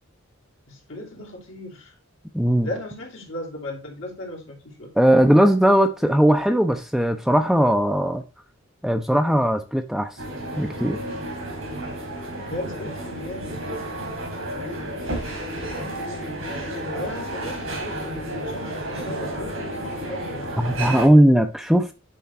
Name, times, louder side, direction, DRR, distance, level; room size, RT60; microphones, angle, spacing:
voice 1, 0.7-1.9 2.6-4.9 12.4-13.6 16.9-20.6, left 1 dB, 65° left, 2.6 m, -36 dB
voice 2, 2.3-2.7 5.0-8.2 8.8-10.1 10.6-11.0 20.6-21.9, equal, ahead, 0.5 m, -18 dB
sound 1, 10.2-21.1, right 1 dB, 80° right, 3.7 m, -31 dB
9.4 x 3.6 x 4.1 m
head